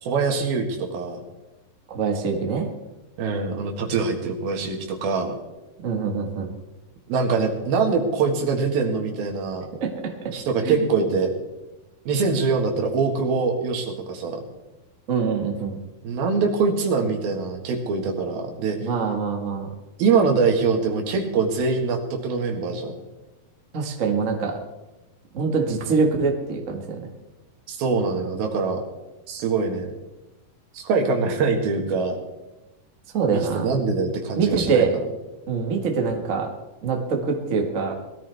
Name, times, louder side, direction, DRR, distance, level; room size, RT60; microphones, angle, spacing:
voice 1, 0.0-1.2 3.2-5.3 7.1-9.7 10.3-11.3 12.1-14.4 16.0-18.8 20.0-23.0 27.7-28.8 29.3-29.9 30.7-32.2 33.2-35.0, right 4 dB, 90° right, 3 dB, 3.6 m, -23 dB
voice 2, 1.9-2.7 5.8-6.5 9.8-10.1 10.6-10.8 15.1-15.8 18.8-19.7 23.7-24.6 25.3-27.1 33.1-33.7 34.4-34.9 35.5-36.5 36.8-37.9, right 5 dB, 40° right, 2 dB, 1.1 m, -24 dB
20.0 x 13.5 x 3.5 m, 1.0 s
omnidirectional pair, 4.1 m